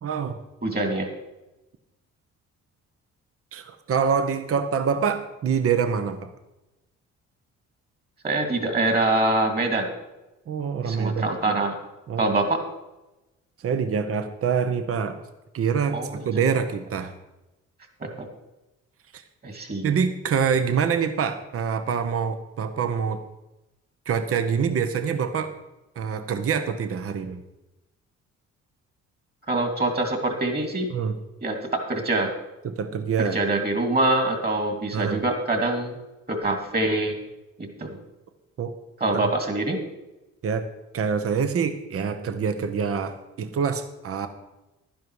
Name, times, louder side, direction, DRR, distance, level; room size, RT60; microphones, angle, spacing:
voice 1, 0.0-0.4 3.5-6.3 10.5-11.6 12.1-12.3 13.6-15.2 15.5-17.1 19.1-19.2 19.8-23.2 24.1-25.5 26.0-27.4 30.9-31.1 32.6-33.4 34.9-35.2 38.6-38.7 40.4-40.7 40.9-44.3, right 6 dB, 50° right, 9 dB, 0.9 m, -25 dB
voice 2, 0.6-1.1 8.2-9.9 10.8-11.7 12.2-12.6 15.9-16.2 18.0-18.1 19.4-20.0 29.5-30.8 31.4-31.6 31.9-32.3 33.2-36.0 36.3-37.2 37.8-38.0 39.0-39.8, right 2 dB, 30° right, 5 dB, 2.4 m, -24 dB
11.5 x 10.5 x 4.7 m, 1.0 s
cardioid pair, 90°, 30 cm